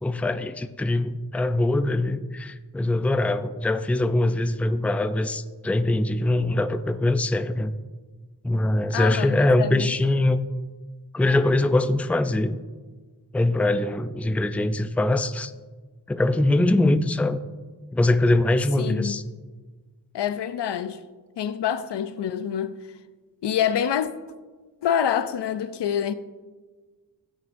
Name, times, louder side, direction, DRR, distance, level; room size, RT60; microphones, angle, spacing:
voice 1, 0.0-7.8 8.4-10.4 11.1-12.6 13.3-15.5 16.1-17.4 17.9-19.2, left 2 dB, 5° left, 0.4 m, -22 dB
voice 2, 8.9-9.9 18.8-19.2 20.1-21.0 21.4-22.8 23.4-24.1 24.8-26.1, left 9 dB, 90° left, 0.6 m, -26 dB
17.0 x 6.4 x 2.6 m
wide cardioid pair, 85°, 40 cm